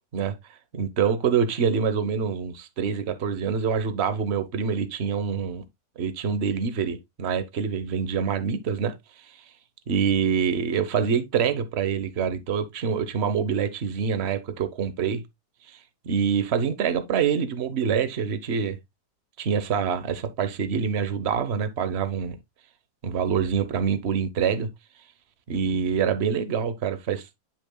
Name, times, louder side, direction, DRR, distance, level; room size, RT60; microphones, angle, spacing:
voice 1, 0.7-5.6 6.0-8.9 9.9-15.2 16.0-18.8 19.4-22.4 23.0-24.7 25.5-27.3, right 7 dB, 45° right, 1.1 m, -25 dB
10.5 x 5.8 x 2.2 m
omnidirectional pair, 1.8 m